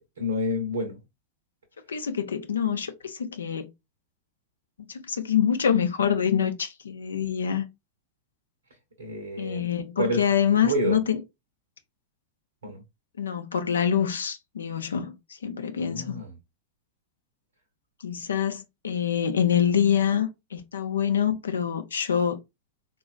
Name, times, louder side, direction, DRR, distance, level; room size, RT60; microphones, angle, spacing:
voice 1, 0.2-1.0 9.0-9.7 10.0-10.2 10.6-11.0 12.6-12.8 15.8-16.3, equal, 70° right, 0.7 m, -29 dB
voice 2, 1.9-3.7 4.9-7.6 9.4-11.2 13.2-16.2 18.0-22.4, left 8 dB, 70° left, 0.5 m, -26 dB
3.8 x 2.3 x 2.3 m
figure-of-eight pair, 90°, 0 cm